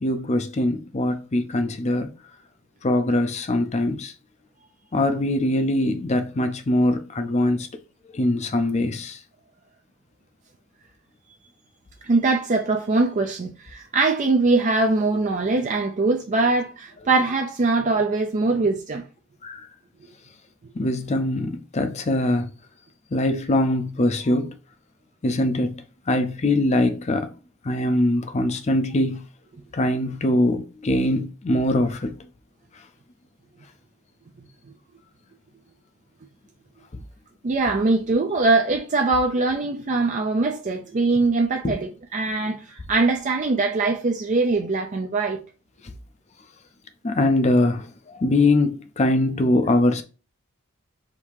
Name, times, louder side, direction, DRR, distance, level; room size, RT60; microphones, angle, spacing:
voice 1, 0.0-2.1 2.8-4.1 4.9-7.7 8.1-9.2 19.4-19.7 20.7-22.5 23.1-24.5 25.2-27.3 27.6-29.2 29.7-32.1 41.6-41.7 47.0-50.0, left 1 dB, 30° left, 0.5 m, -22 dB
voice 2, 12.0-19.0 37.4-45.4, right 3 dB, 35° right, 0.4 m, -22 dB
3.6 x 2.7 x 4.6 m
head